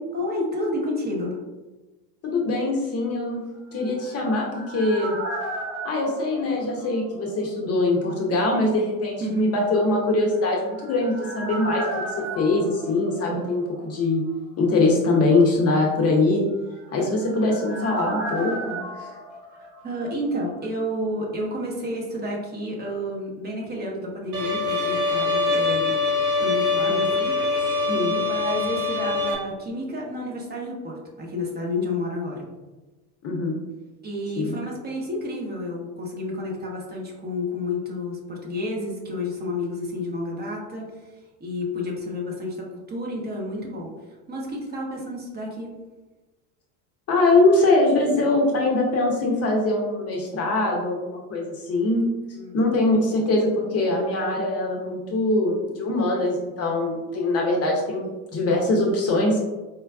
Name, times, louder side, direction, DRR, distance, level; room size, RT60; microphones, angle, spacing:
voice 1, 0.1-1.4 9.2-9.5 19.5-25.9 26.4-27.4 27.7-32.4 34.0-41.1 41.4-43.9 44.3-45.8 52.3-52.6 57.5-57.6, left 1 dB, 20° right, -2 dB, 0.8 m, -30 dB
voice 2, 2.2-3.4 3.7-5.2 5.8-11.9 12.4-14.2 14.6-16.4 16.9-19.1 26.9-27.0 27.9-28.2 33.2-33.6 34.4-34.5 47.1-52.0 52.5-59.4, left 2 dB, 35° left, -1 dB, 0.6 m, -22 dB
sound 1, 3.7-7.5 7.8-7.9 10.3-14.0 14.3-14.4 16.6-20.5 20.7-20.8, right 2 dB, 70° right, 1.4 m, -35 dB
Bowed string instrument, 24.3-29.3, left 3 dB, 90° right, 0.8 m, -23 dB
4.4 x 2.2 x 2.3 m, 1.2 s
hypercardioid pair, 75°, 45 cm